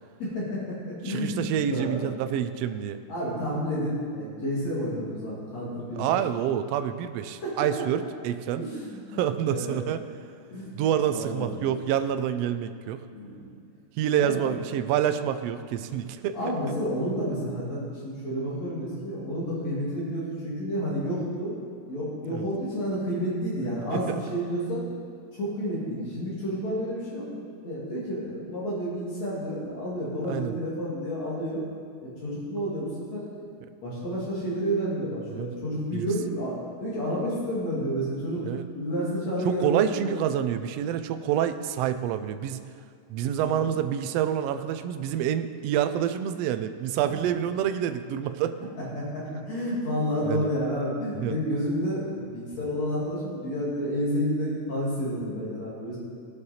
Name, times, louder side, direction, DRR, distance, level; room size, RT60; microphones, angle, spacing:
voice 1, 0.2-2.1 3.1-6.2 7.3-7.9 8.6-9.8 10.5-10.7 11.1-11.7 13.1-13.4 14.2-14.5 16.3-21.5 21.9-24.8 25.3-27.3 27.6-31.6 32.0-33.5 33.8-38.4 38.7-40.1 43.4-43.7 47.0-47.2 48.8-56.0, equal, 65° left, -7 dB, 3.5 m, -30 dB
voice 2, 1.0-3.0 5.9-8.6 9.1-10.0 10.7-13.0 14.0-16.4 22.2-22.5 23.9-24.1 30.2-30.5 35.3-35.5 35.9-36.1 38.4-38.6 39.6-42.6 43.1-48.6 50.3-50.5 51.2-51.4, right 10 dB, 85° right, 10 dB, 1.4 m, -27 dB
17.0 x 6.6 x 4.3 m, 2.3 s
omnidirectional pair, 3.4 m